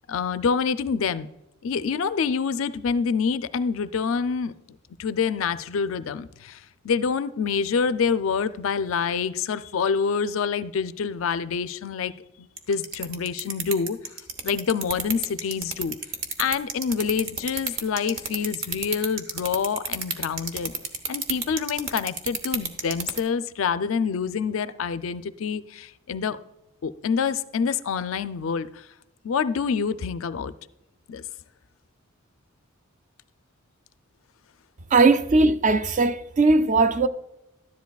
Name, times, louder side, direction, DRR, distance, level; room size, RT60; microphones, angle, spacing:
voice 1, 0.1-1.3 1.6-4.5 5.0-12.1 12.4-14.0 14.4-16.0 16.4-20.7 21.1-26.4 26.8-28.9 29.2-30.5 31.1-31.2, left 6 dB, 65° left, 0.4 m, -26 dB
sound 1, 12.6-23.2, right 5 dB, 65° right, 1.0 m, -28 dB
voice 2, 34.9-37.1, right 3 dB, 35° right, 0.4 m, -19 dB
13.0 x 10.5 x 2.3 m
head